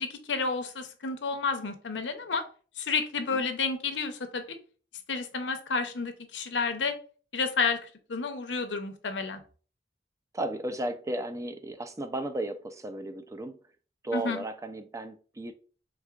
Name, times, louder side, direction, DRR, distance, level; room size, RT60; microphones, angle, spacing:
voice 1, 0.0-2.4 2.8-4.4 5.1-6.9 7.3-9.4 14.1-14.4, left 4 dB, 85° left, 7 dB, 0.7 m, -30 dB
voice 2, 10.3-13.6 14.0-15.5, right 1 dB, 20° right, 8 dB, 0.4 m, -34 dB
4.7 x 3.6 x 2.3 m, 0.39 s
head